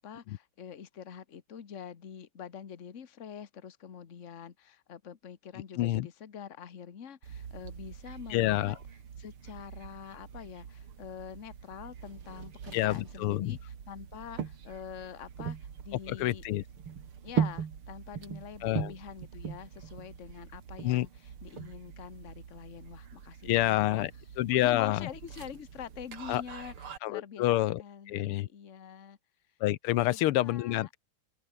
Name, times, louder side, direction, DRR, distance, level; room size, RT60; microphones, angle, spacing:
voice 1, 0.0-8.8 9.2-15.6 15.8-16.4 17.2-24.1 24.5-27.4 27.8-29.2 30.0-30.9, left 8 dB, 40° left, 1.5 m, -45 dB
sound 1, 7.2-27.0, right 7 dB, 75° right, 2.9 m, -41 dB
voice 2, 8.3-8.7 12.7-13.6 16.1-16.6 18.6-18.9 20.8-21.1 23.5-24.1 24.4-25.1 26.3-26.4 27.0-27.8 28.1-28.5 29.6-31.0, left 15 dB, 85° left, 1.7 m, -28 dB
open air
omnidirectional pair, 2.4 m